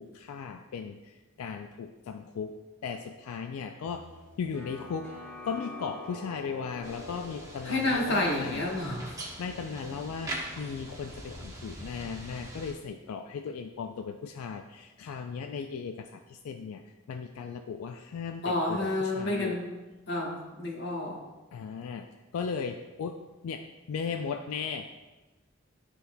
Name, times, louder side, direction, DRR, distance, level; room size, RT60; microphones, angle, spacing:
voice 1, 0.0-2.6 2.8-4.1 4.4-5.1 5.4-8.6 9.4-16.8 17.1-19.6 21.5-22.1 22.3-25.0, left 6 dB, 90° left, 6 dB, 0.3 m, -37 dB
sound 1, 3.8-9.1, left 2 dB, 10° left, 1.1 m, -46 dB
sound 2, 6.8-12.7, right 1 dB, 15° right, 0.8 m, -42 dB
voice 2, 7.6-9.2 18.4-19.7 20.1-21.2, left 1 dB, 55° left, -1 dB, 1.2 m, -29 dB
11.5 x 4.0 x 2.2 m, 1.2 s
head